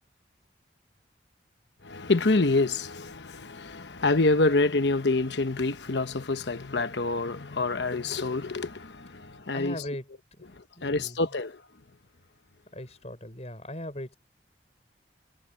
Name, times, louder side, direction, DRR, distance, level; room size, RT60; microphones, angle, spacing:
voice 1, 1.8-9.8 10.5-11.6, left 3 dB, 70° left, 1.1 m, -27 dB
voice 2, 9.5-10.1 10.4-10.5 10.8-11.2 12.7-14.2, left 1 dB, 35° left, 5.7 m, -38 dB
head